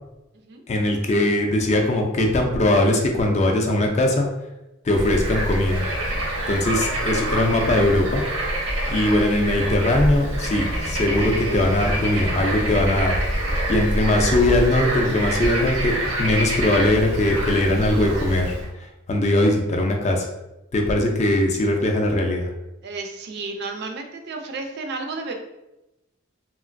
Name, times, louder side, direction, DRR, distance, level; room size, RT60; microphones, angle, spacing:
voice 1, 0.7-4.3 4.8-5.8 6.5-8.2 8.9-13.2 13.7-20.3 20.7-22.5, left 1 dB, 35° left, 2 dB, 0.4 m, -20 dB
Bird / Frog, 4.9-18.7, right 1 dB, 85° right, 0.7 m, -26 dB
voice 2, 22.8-25.3, right 3 dB, 55° right, 4 dB, 0.4 m, -32 dB
3.0 x 2.5 x 2.5 m, 0.95 s
head